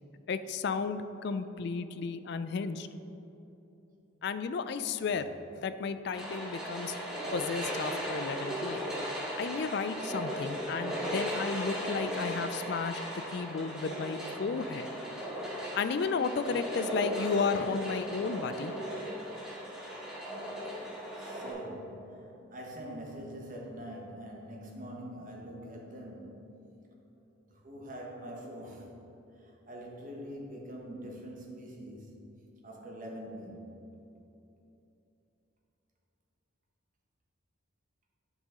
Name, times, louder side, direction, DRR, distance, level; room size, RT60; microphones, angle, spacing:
voice 1, 0.3-2.9 4.2-5.3 5.6-7.0 7.3-8.9 9.4-13.1 13.3-14.9 15.8-18.7, left 5 dB, 55° left, 11 dB, 0.3 m, -33 dB
sound 1, 6.1-21.5, equal, 5° right, 1.4 m, -37 dB
voice 2, 21.1-26.6 27.3-28.9 29.3-32.1 32.6-33.8, equal, 40° right, -1 dB, 1.1 m, -44 dB
9.0 x 5.5 x 3.7 m, 2.9 s
head